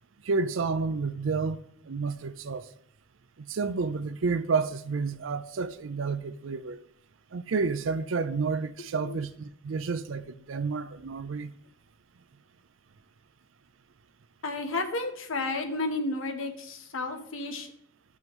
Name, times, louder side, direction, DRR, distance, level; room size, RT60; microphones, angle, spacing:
voice 1, 0.2-1.6 1.9-2.7 3.5-6.8 7.3-11.5, right 4 dB, 70° right, 0.5 m, -30 dB
voice 2, 14.4-17.7, left 2 dB, 80° left, 1.1 m, -32 dB
13.5 x 5.5 x 3.1 m
head